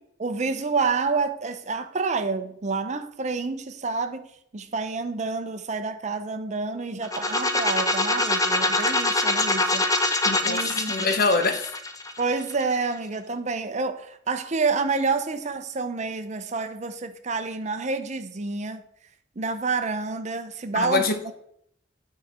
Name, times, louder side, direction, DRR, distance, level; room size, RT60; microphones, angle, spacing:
voice 1, 0.2-4.3 4.5-9.9 10.4-11.1 12.2-18.8 19.4-21.3, right 4 dB, 40° right, 0.7 m, -28 dB
sound 1, 7.0-12.8, left 2 dB, 20° left, 0.6 m, -24 dB
voice 2, 10.2-11.7 20.7-21.3, left 3 dB, 55° left, 0.9 m, -25 dB
8.9 x 4.8 x 4.3 m
head